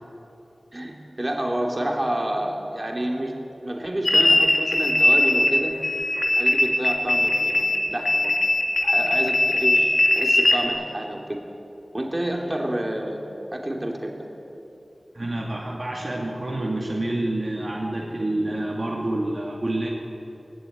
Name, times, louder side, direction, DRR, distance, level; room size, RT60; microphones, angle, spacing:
voice 1, 0.7-3.3 3.6-5.8 6.3-8.3 8.8-11.4 11.9-13.2 13.5-14.3, right 1 dB, 25° right, 0 dB, 3.1 m, -29 dB
sound 1, 4.0-5.6 5.8-10.6, left 1 dB, 50° left, 2.4 m, -20 dB
voice 2, 15.1-19.9, right 1 dB, 50° right, -3 dB, 2.3 m, -28 dB
19.0 x 17.5 x 9.6 m, 3.0 s
wide cardioid pair, 75°, 0 cm